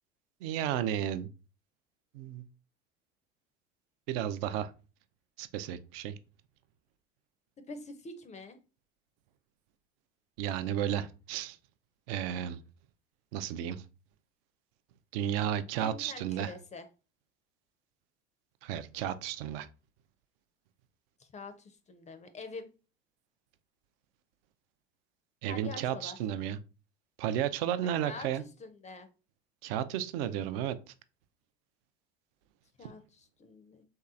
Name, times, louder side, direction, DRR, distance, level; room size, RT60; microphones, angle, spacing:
voice 1, 0.4-1.3 2.1-2.4 4.1-4.7 5.4-6.1 10.4-11.6 12.1-12.6 13.3-13.8 15.1-16.5 18.6-19.7 25.4-26.6 27.2-28.4 29.6-30.9 32.8-32.9, right 10 dB, 60° right, 0.4 m, -33 dB
voice 2, 7.7-8.6 15.8-16.9 21.2-22.7 25.5-26.2 27.8-29.1 32.8-33.8, left 3 dB, 20° left, 0.4 m, -46 dB
3.3 x 2.8 x 2.4 m
hypercardioid pair, 75°, 33 cm